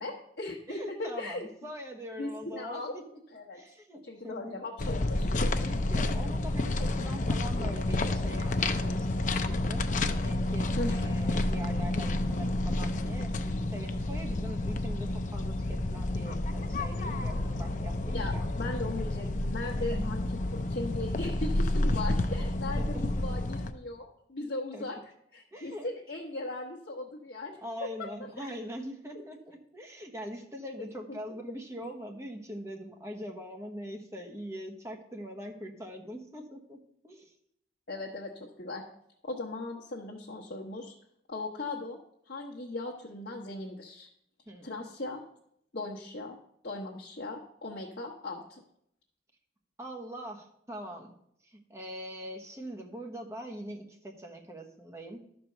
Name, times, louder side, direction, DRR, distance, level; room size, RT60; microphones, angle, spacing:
voice 1, 0.0-1.5 2.2-3.0 3.3-3.6 4.0-5.7 10.8-10.9 18.1-25.0 25.3-28.1 28.4-28.5 31.1-31.2 37.9-38.9 39.2-40.9 41.3-42.0 42.2-44.1 44.6-45.2 45.7-46.4 46.6-48.6, left 2 dB, 65° left, -4 dB, 1.1 m, -38 dB
voice 2, 0.7-3.0 3.5-4.6 5.2-5.3 5.6-9.8 10.2-18.5 19.8-20.1 21.9-22.0 22.8-23.1 24.7-24.8 25.5-25.9 27.6-37.4 44.5-44.9 49.8-51.1 51.4-55.2, equal, 15° right, 3 dB, 1.1 m, -43 dB
sound 1, 4.8-23.7, left 2 dB, 45° left, 0.6 m, -30 dB
11.5 x 4.5 x 6.6 m, 0.73 s
head